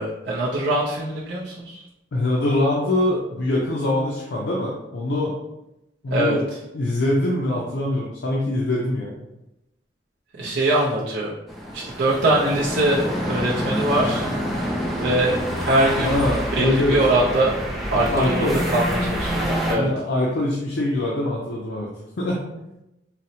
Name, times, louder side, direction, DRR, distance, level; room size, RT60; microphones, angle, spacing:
voice 1, 0.0-1.8 6.1-6.4 10.4-11.3 11.7-14.3 14.9-16.2 16.6-17.5 17.9-19.9, right 1 dB, 90° right, -6 dB, 0.5 m, -22 dB
voice 2, 2.1-5.3 6.0-6.4 6.7-9.1 10.6-10.7 16.0-16.9 18.1-18.6 19.7-21.9 22.2-22.4, left 1 dB, 80° left, -3 dB, 0.5 m, -23 dB
sound 1, 11.5-19.7, equal, ahead, 0.3 m, -27 dB
4.0 x 2.0 x 2.7 m, 0.91 s
head